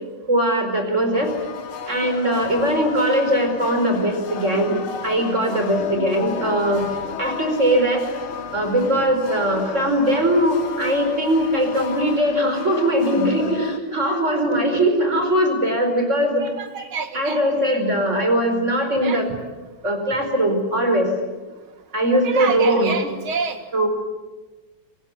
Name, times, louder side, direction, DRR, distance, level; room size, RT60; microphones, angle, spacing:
voice 1, 0.3-1.3 1.9-6.9 7.2-8.0 8.5-16.4 17.1-19.3 19.8-21.1 21.9-22.9 23.7-23.9, right 1 dB, 35° right, 5 dB, 5.0 m, -20 dB
sound 1, 1.1-13.8, left 7 dB, 80° left, 2.4 m, -33 dB
voice 2, 16.4-17.4 19.0-19.2 22.1-23.7, right 5 dB, 75° right, 8 dB, 2.8 m, -28 dB
25.0 x 19.5 x 9.4 m, 1.2 s
omnidirectional pair, 2.3 m